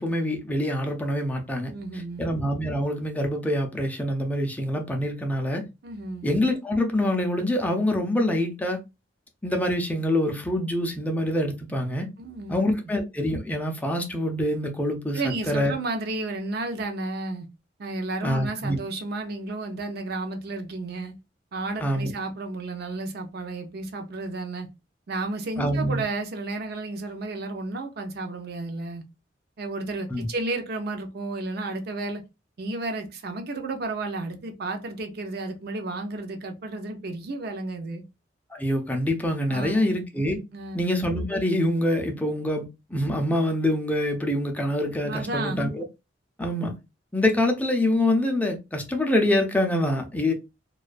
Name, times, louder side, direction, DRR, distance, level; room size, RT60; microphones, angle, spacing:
voice 1, 0.0-1.7 2.2-5.6 6.2-8.8 9.4-12.1 12.5-15.7 18.2-18.8 21.8-22.1 25.6-26.0 30.1-30.3 38.5-40.4 40.8-45.8 46.4-46.8 47.1-50.3, left 1 dB, 10° left, 0.4 m, -25 dB
voice 2, 1.7-2.3 5.8-6.3 12.2-12.6 15.1-17.5 17.8-21.1 21.5-24.7 25.1-29.0 29.6-32.2 32.6-38.0 39.5-39.9 40.5-40.8 45.0-45.6, right 2 dB, 60° right, 0.5 m, -32 dB
2.3 x 2.2 x 2.4 m
head